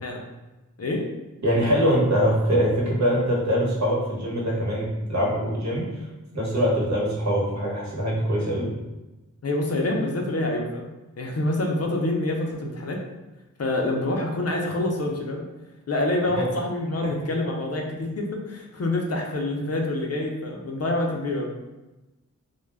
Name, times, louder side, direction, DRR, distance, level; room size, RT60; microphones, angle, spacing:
voice 1, 1.4-5.9 6.3-8.7 16.3-16.4 17.0-17.1, equal, 55° right, -5 dB, 1.0 m, -23 dB
voice 2, 9.4-10.9 11.2-13.0 13.6-15.4 15.9-21.5, left 2 dB, 50° left, 0 dB, 0.5 m, -26 dB
2.3 x 2.1 x 3.2 m, 1.1 s
cardioid pair, 50°, 33 cm